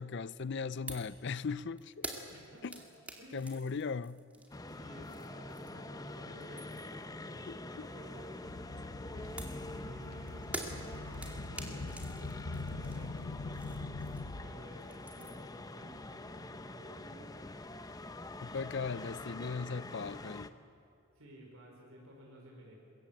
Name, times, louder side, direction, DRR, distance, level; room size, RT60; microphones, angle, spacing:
voice 1, 0.0-2.1 2.6-2.8 3.3-4.2 7.5-7.9 18.4-20.5, left 5 dB, 55° left, 0.5 m, -38 dB
sound 1, 0.9-1.2 1.4-5.9 6.3-7.0 9.4-14.5 14.7-15.5, right 1 dB, 5° right, 2.3 m, -47 dB
voice 2, 2.3-2.8 3.2-3.5 4.7-8.3 9.1-9.4 9.7-14.1 14.4-17.5 21.1-22.8, equal, 75° right, 5.0 m, -54 dB
sound 2, 4.5-20.5, left 2 dB, 15° left, 0.8 m, -46 dB
sound 3, 8.4-14.7 15.2-15.4 16.3-16.4 17.2-17.3, left 3 dB, 85° left, 0.9 m, -43 dB
24.0 x 21.5 x 8.8 m
head